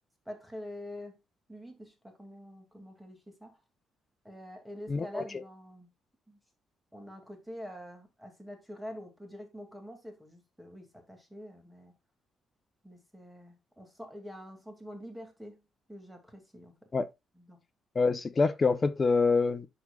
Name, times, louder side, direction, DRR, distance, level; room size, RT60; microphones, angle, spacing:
voice 1, 0.3-1.2 1.5-3.6 4.2-5.9 6.3-6.4 6.9-11.9 12.8-16.8 17.3-17.6, equal, 5° right, 2.6 m, -46 dB
voice 2, 4.9-5.2 16.9-17.1 17.9-19.7, left 4 dB, 35° left, 0.8 m, -26 dB
11.5 x 4.9 x 2.5 m
cardioid pair, 90°, 0 cm